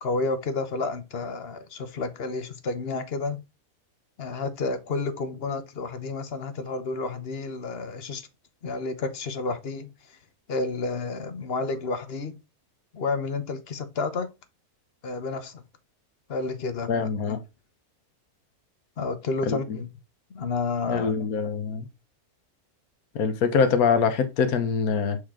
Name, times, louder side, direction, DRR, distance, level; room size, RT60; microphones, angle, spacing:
voice 1, 0.0-3.4 4.2-8.2 8.6-10.2 10.5-12.4 12.9-14.3 15.0-15.6 16.3-17.4 19.0-19.9 20.3-21.1, left 3 dB, 45° left, 1.0 m, -30 dB
voice 2, 16.9-17.4 19.5-19.8 20.9-21.9 23.1-25.2, left 6 dB, 75° left, 1.4 m, -24 dB
6.5 x 4.3 x 3.7 m
omnidirectional pair, 1.6 m